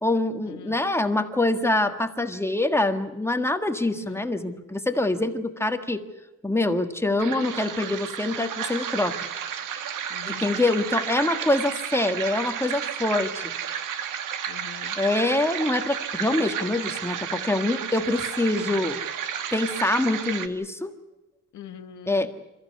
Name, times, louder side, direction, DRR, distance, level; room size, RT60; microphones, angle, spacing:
voice 1, 0.0-6.0 6.4-9.2 10.3-13.5 15.0-19.0 19.5-20.9 22.1-22.3, left 2 dB, 10° left, 6 dB, 1.6 m, -25 dB
sound 1, 7.2-20.5, right 8 dB, 85° right, 1.9 m, -32 dB
voice 2, 10.1-10.7 14.5-15.0 21.5-22.3, left 9 dB, 70° left, 5 dB, 1.8 m, -43 dB
28.5 x 14.5 x 9.5 m, 1.1 s
cardioid pair, 135°, 31 cm